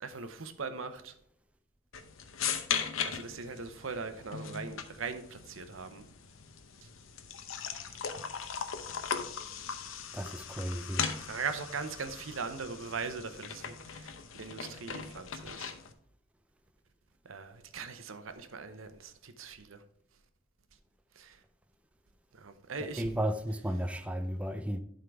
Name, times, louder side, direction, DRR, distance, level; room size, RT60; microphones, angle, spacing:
voice 1, 0.0-1.2 3.0-6.1 6.8-6.9 7.9-8.0 11.0-15.8 17.2-19.8 21.1-21.4 22.3-23.1, right 5 dB, 80° right, 0.8 m, -40 dB
sound 1, 1.9-15.9, left 7 dB, 80° left, 0.7 m, -39 dB
voice 2, 10.1-11.2 23.0-24.8, equal, 5° right, 0.4 m, -34 dB
11.0 x 3.8 x 4.7 m
head